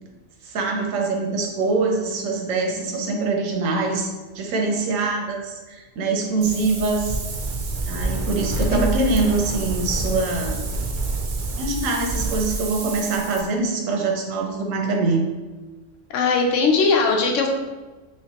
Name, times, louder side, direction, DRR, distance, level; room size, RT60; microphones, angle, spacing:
voice 1, 0.4-4.1 4.3-7.2 7.8-10.6 11.5-15.2, right 3 dB, 90° right, 2 dB, 1.0 m, -24 dB
Wind, 6.4-13.4, right 2 dB, 65° right, 0.4 m, -27 dB
voice 2, 16.1-17.5, left 4 dB, 80° left, 2 dB, 0.9 m, -19 dB
3.2 x 3.2 x 2.8 m, 1.2 s
omnidirectional pair, 1.3 m